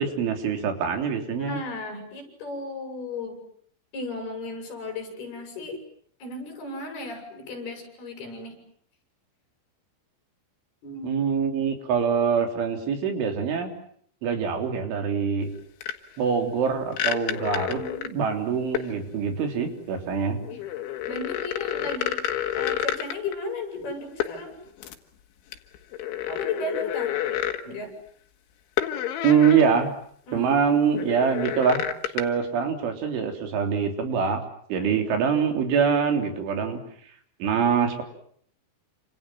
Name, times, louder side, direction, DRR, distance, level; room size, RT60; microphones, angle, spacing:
voice 1, 0.0-1.6 11.0-13.7 14.2-15.5 16.2-17.8 18.1-20.4 29.2-29.9 30.3-31.8 32.1-34.4 34.7-36.8 37.4-38.0, right 6 dB, 90° right, 5 dB, 5.9 m, -24 dB
voice 2, 1.4-3.4 3.9-5.8 6.2-8.6 10.8-11.3 17.7-18.2 20.5-20.6 21.1-22.2 22.5-24.6 26.3-27.1 27.6-27.9 30.3-30.7 34.8-35.2, left 2 dB, 55° left, 5 dB, 8.7 m, -35 dB
sound 1, 15.8-15.9 16.9-18.2 18.7-18.9 20.4-23.3 24.2-24.4 24.8-24.9 25.5-27.6 28.8-29.6 30.0-30.1 30.9-32.2, left 11 dB, 90° left, 4.2 m, -29 dB
29.5 x 27.0 x 7.6 m, 0.63 s
omnidirectional pair, 5.3 m